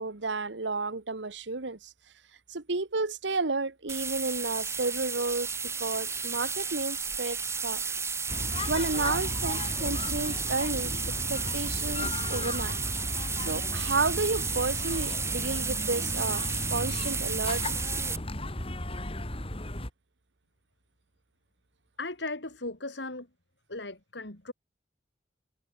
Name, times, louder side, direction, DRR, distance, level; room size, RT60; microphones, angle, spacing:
voice 1, 0.0-1.9 2.5-5.5 5.8-7.8 8.7-10.9 11.3-12.8 13.4-17.6, right 3 dB, 90° right, 1.4 m, -31 dB
sound 1, 3.9-18.2, right 5 dB, 15° right, 1.0 m, -33 dB
sound 2, 8.3-19.9, left 1 dB, 30° left, 3.8 m, -35 dB
voice 2, 22.0-23.3 23.7-24.5, left 2 dB, 75° left, 3.9 m, -37 dB
head